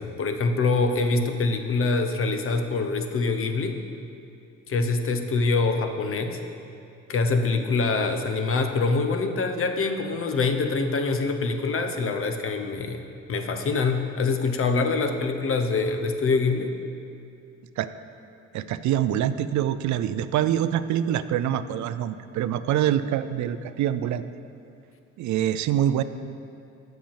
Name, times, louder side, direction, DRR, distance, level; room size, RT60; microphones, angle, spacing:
voice 1, 0.0-3.8 4.7-6.4 7.1-16.7, left 3 dB, 45° left, 6 dB, 0.8 m, -25 dB
voice 2, 18.5-24.2 25.2-26.0, right 11 dB, 70° right, 13 dB, 0.4 m, -25 dB
7.5 x 5.7 x 7.3 m, 2.6 s
cardioid pair, 90°, 30 cm